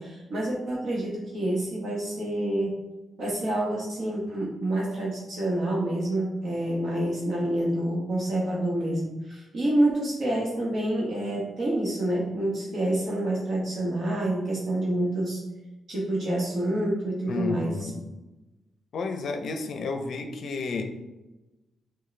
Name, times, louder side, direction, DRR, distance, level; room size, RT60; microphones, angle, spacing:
voice 1, 0.0-2.8 3.2-15.4 15.9-17.9, right 1 dB, 50° right, -4 dB, 1.1 m, -27 dB
voice 2, 17.3-17.9 18.9-21.0, left 4 dB, 60° left, 5 dB, 0.5 m, -31 dB
6.2 x 2.2 x 3.2 m, 1.1 s
wide cardioid pair, 140°, 0 cm